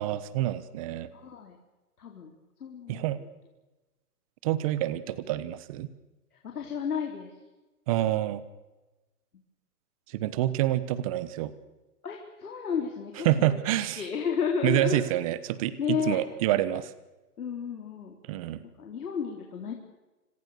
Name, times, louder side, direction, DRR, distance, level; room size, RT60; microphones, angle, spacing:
voice 1, 0.0-1.1 2.9-3.2 4.4-5.9 7.9-8.4 10.1-11.5 13.2-14.1 14.6-16.9 18.3-18.6, right 14 dB, 20° right, 16 dB, 1.1 m, -27 dB
voice 2, 1.1-1.6 2.0-2.4 2.6-3.2 6.5-7.3 12.0-13.6 14.0-15.0 15.8-16.2 17.4-18.1 18.8-19.7, left 6 dB, 70° left, 1 dB, 4.3 m, -32 dB
27.0 x 26.5 x 6.8 m, 1.1 s
hypercardioid pair, 150°, 47 cm